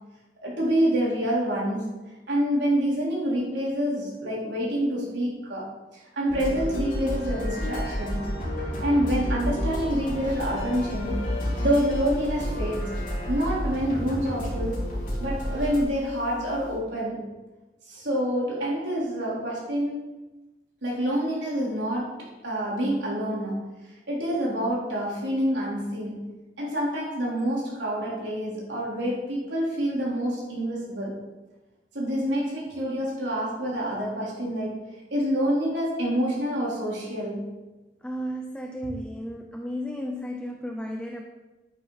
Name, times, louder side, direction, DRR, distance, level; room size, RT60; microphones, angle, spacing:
voice 1, 0.4-1.9 2.3-5.7 6.1-8.3 8.8-11.3 11.6-12.9 13.3-14.8 15.2-17.2 17.9-20.0 20.8-23.7 24.1-31.2 31.9-34.8 35.1-37.5, equal, 90° right, -5 dB, 3.9 m, -27 dB
sound 1, 6.3-15.8, equal, 45° left, 3.6 m, -30 dB
sound 2, 9.4-16.8, equal, 45° right, 3.9 m, -46 dB
voice 2, 38.0-41.2, equal, 5° left, 2 dB, 0.6 m, -33 dB
11.0 x 9.1 x 4.1 m, 1.1 s
head